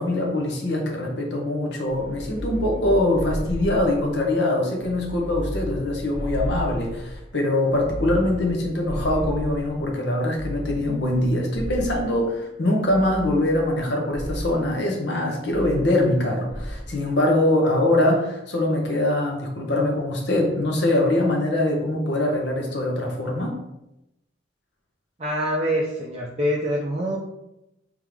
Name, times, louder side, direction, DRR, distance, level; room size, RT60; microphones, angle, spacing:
voice 1, 0.0-23.6, left 1 dB, 60° left, 0 dB, 0.9 m, -23 dB
sound 1, 1.9-4.3 4.8-7.2 7.7-9.9 10.3-12.2 12.8-13.8 14.1-14.6 15.5-16.2 16.5-16.9, equal, 20° left, 0.8 m, -33 dB
voice 2, 25.2-27.2, equal, 35° right, -3 dB, 0.5 m, -25 dB
3.6 x 3.6 x 3.1 m, 0.89 s
head